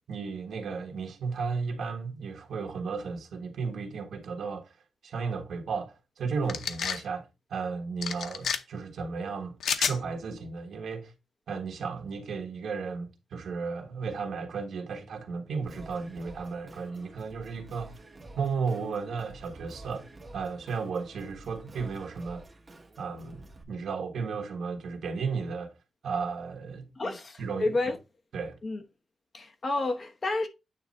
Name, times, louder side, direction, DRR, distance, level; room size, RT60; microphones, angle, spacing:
voice 1, 0.1-4.7 5.0-11.1 11.5-17.9 18.4-20.1 20.3-22.4 23.0-25.7 26.0-27.7 28.3-28.6, right 5 dB, 70° right, 1.5 m, -34 dB
sound 1, 6.5-7.0 8.0-8.6 9.6-10.0, left 7 dB, 90° left, 0.7 m, -29 dB
Singing, 15.6-23.6, right 2 dB, 20° right, 1.5 m, -50 dB
voice 2, 27.0-28.0 28.6-28.8 29.3-30.5, left 2 dB, 30° left, 0.9 m, -30 dB
9.2 x 3.2 x 4.1 m
wide cardioid pair, 170°, 0 cm